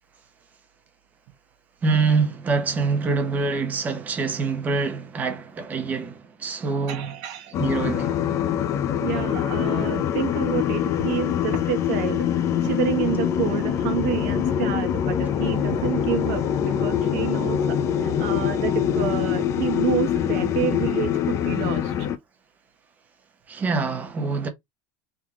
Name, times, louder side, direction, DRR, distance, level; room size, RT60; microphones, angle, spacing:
voice 1, 1.8-7.1 7.6-8.2 23.5-24.5, right 4 dB, 15° right, 0.8 m, -25 dB
voice 2, 6.9-7.6 9.0-12.3 12.6-22.1, right 11 dB, 60° right, 1.0 m, -29 dB
sound 1, 7.5-22.2, left 9 dB, 30° left, 0.5 m, -24 dB
3.6 x 3.1 x 3.6 m
supercardioid pair, 170°, 10 cm